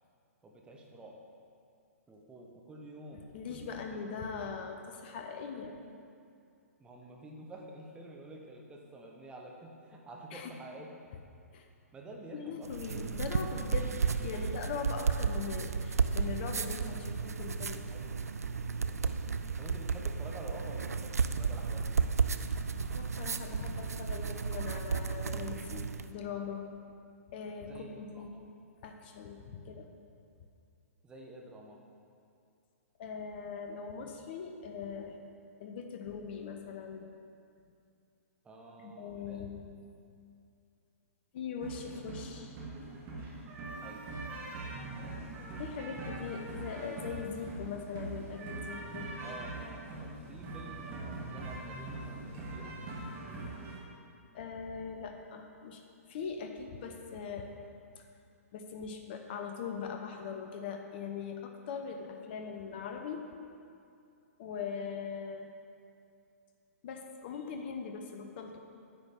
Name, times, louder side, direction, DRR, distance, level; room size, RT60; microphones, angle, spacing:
voice 1, 0.4-1.2 2.1-3.8 4.2-4.3 6.8-10.9 11.9-12.7 14.3-14.6 17.9-19.3 19.6-22.2 27.6-28.5 31.0-31.8 38.4-39.5 43.8-44.0 49.2-52.8, right 1 dB, 10° right, 0 dB, 1.1 m, -49 dB
voice 2, 3.1-5.8 10.3-10.5 11.5-11.7 12.3-17.9 22.9-26.7 27.3-28.3 28.8-29.9 33.0-35.2 35.6-37.1 38.8-39.7 41.3-42.5 45.6-49.1 54.3-55.8 56.1-57.5 58.0-58.1 58.5-63.3 64.4-65.5 66.8-68.6, left 6 dB, 40° left, 4 dB, 0.8 m, -41 dB
sound 1, 12.6-26.1, right 5 dB, 70° right, 0.4 m, -33 dB
sound 2, 41.6-53.8, right 2 dB, 25° right, 1.7 m, -42 dB
10.0 x 8.8 x 3.6 m, 2.5 s
figure-of-eight pair, 120°, 8 cm